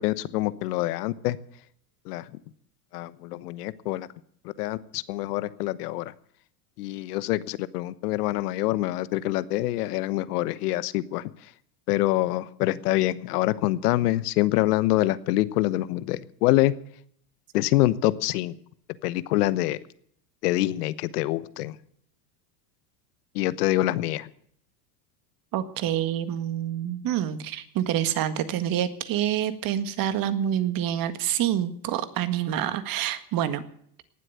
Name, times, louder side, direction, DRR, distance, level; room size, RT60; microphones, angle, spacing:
voice 1, 0.0-1.4 2.1-2.2 2.9-4.1 4.6-6.1 6.8-11.2 11.9-16.7 17.5-18.5 19.0-19.8 20.4-21.7 23.3-24.3, left 16 dB, 75° left, 17 dB, 1.1 m, -25 dB
voice 2, 25.5-33.6, right 11 dB, 45° right, 11 dB, 1.8 m, -27 dB
18.5 x 7.9 x 9.3 m, 0.65 s
supercardioid pair, 105°, 46 cm